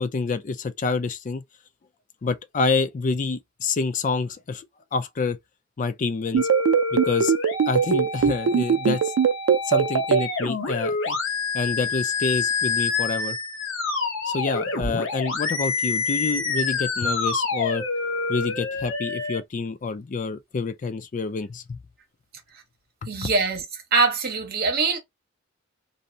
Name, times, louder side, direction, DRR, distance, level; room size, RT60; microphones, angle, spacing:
voice 1, 0.0-1.4 2.2-4.7 4.9-5.4 5.8-6.5 6.9-7.3 7.7-9.1 9.7-11.2 11.5-13.4 14.3-17.8 18.3-21.8 23.0-23.1, left 4 dB, 40° left, 0.4 m, -27 dB
sound 1, 6.3-10.2, right 7 dB, 85° right, 0.4 m, -19 dB
sound 2, 6.4-19.4, left 4 dB, 65° left, 0.8 m, -27 dB
voice 2, 23.1-23.6 23.9-25.0, right 4 dB, 50° right, 1.0 m, -22 dB
2.7 x 2.0 x 2.7 m
head